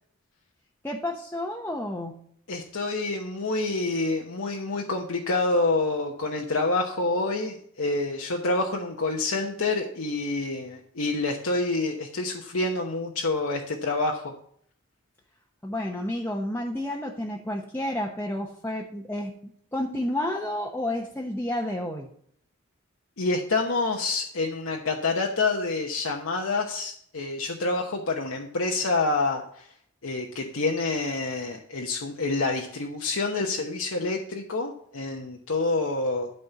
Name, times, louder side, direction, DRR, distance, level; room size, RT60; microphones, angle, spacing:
voice 1, 0.8-2.2 15.6-19.3 19.7-22.1, left 1 dB, 10° left, -1 dB, 0.9 m, -30 dB
voice 2, 2.5-14.3 23.2-29.7 30.0-36.3, left 3 dB, 75° left, 1 dB, 1.1 m, -27 dB
12.5 x 4.4 x 6.8 m, 0.64 s
head